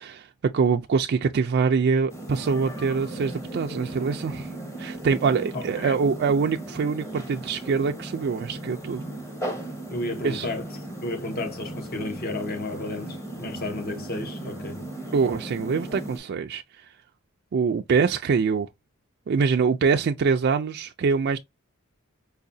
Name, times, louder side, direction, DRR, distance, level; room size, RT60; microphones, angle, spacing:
voice 1, 0.0-4.5 4.8-9.0 10.2-10.5 15.1-16.9 17.5-18.7 19.3-21.4, right 5 dB, 50° right, 0.3 m, -24 dB
sound 1, 2.1-16.2, right 1 dB, 15° left, 0.9 m, -36 dB
voice 2, 5.5-5.9 9.9-10.6 11.0-14.8, left 2 dB, 45° left, 0.9 m, -32 dB
4.8 x 2.2 x 2.6 m
head